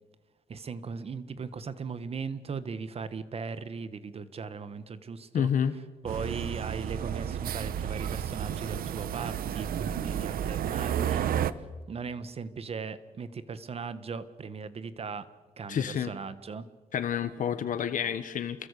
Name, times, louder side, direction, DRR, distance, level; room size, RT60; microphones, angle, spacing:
voice 1, 0.5-5.5 6.0-11.6 11.9-15.3 15.6-16.7, right 5 dB, 45° right, 13 dB, 1.4 m, -38 dB
voice 2, 5.3-5.8 15.7-16.1 16.9-18.7, left 8 dB, 65° left, 11 dB, 1.3 m, -29 dB
sound 1, 6.1-11.5, right 9 dB, 80° right, 1.0 m, -32 dB
29.0 x 22.5 x 8.3 m, 1.2 s
cardioid pair, 130°, 15 cm